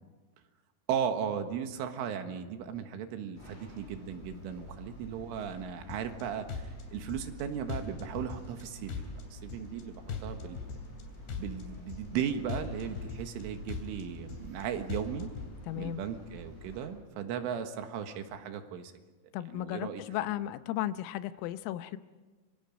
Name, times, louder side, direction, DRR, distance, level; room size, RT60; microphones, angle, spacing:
voice 1, 0.9-10.7 11.4-15.3 15.8-18.9 19.5-20.0, right 8 dB, 75° right, 6 dB, 3.9 m, -36 dB
sound 1, 3.3-16.9, equal, 30° left, 8.8 m, -49 dB
sound 2, 5.9-6.2 6.5-7.4 7.7-8.6 8.9-9.8 10.1-11.0 11.3-12.2 12.5-13.4 13.7-14.6 14.9-15.5, left 5 dB, 60° left, 4.9 m, -40 dB
voice 2, 15.7-16.0 19.3-22.0, left 14 dB, 85° left, 12 dB, 3.5 m, -35 dB
29.5 x 25.0 x 5.3 m, 1.3 s
omnidirectional pair, 5.8 m